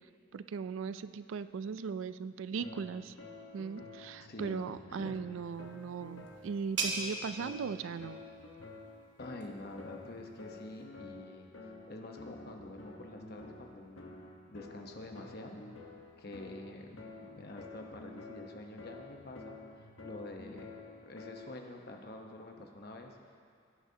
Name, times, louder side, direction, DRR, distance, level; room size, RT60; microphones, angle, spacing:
voice 1, 0.3-3.1 3.5-8.2, right 6 dB, 75° right, 13 dB, 0.4 m, -38 dB
sound 1, 2.6-21.7, left 3 dB, 85° left, 1.2 m, -50 dB
voice 2, 4.2-5.2 9.2-11.5 11.9-14.1 14.5-15.6 16.2-23.2, left 2 dB, 50° left, 2 dB, 1.0 m, -47 dB
sound 2, 5.4-10.8, right 3 dB, 60° right, 1.2 m, -42 dB
17.0 x 9.9 x 2.8 m, 2.3 s
head